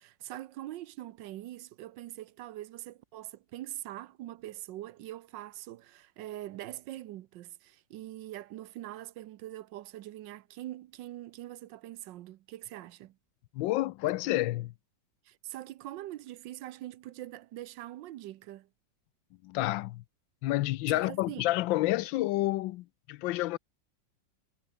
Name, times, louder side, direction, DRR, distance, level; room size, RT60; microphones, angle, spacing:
voice 1, 0.0-13.2 15.2-18.7 20.9-21.4, right 14 dB, 75° right, 1.4 m, -43 dB
voice 2, 13.5-14.7 19.4-20.0 20.4-23.6, left 17 dB, 85° left, 1.3 m, -29 dB
omnidirectional pair, 2.0 m